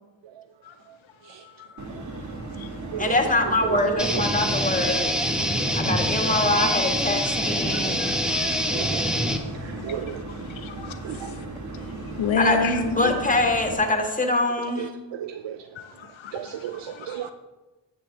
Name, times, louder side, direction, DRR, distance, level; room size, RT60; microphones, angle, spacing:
voice 1, 1.2-1.9 2.2-3.0 6.3-6.4 7.7-11.4 11.7-13.2 15.7-17.3, left 4 dB, 75° left, 8 dB, 0.9 m, -33 dB
sound 1, 1.8-13.8, right 2 dB, 40° right, 1.5 m, -36 dB
voice 2, 1.9-2.2 2.8-3.2 3.4-4.2 6.3-6.4 8.7-9.1 9.4-10.3 11.0-11.3 14.8-15.7 16.3-17.3, right 10 dB, 65° right, 8 dB, 0.6 m, -34 dB
voice 3, 3.0-5.1 5.8-8.0 12.4-14.9, left 2 dB, 15° left, 3 dB, 1.7 m, -24 dB
sound 2, 4.0-9.4, equal, ahead, 1.0 m, -25 dB
10.0 x 7.6 x 3.3 m, 1.2 s
cardioid pair, 45°, 47 cm